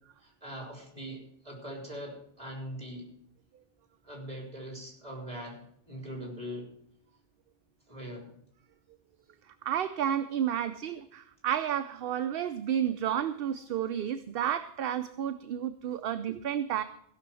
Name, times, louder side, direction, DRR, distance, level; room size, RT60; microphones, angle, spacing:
voice 1, 0.2-3.1 4.0-5.6 5.9-6.7 7.9-8.3, equal, 35° right, 0 dB, 4.3 m, -41 dB
voice 2, 9.6-16.8, right 9 dB, 70° right, 10 dB, 0.8 m, -31 dB
16.0 x 6.0 x 7.5 m, 0.69 s
omnidirectional pair, 1.0 m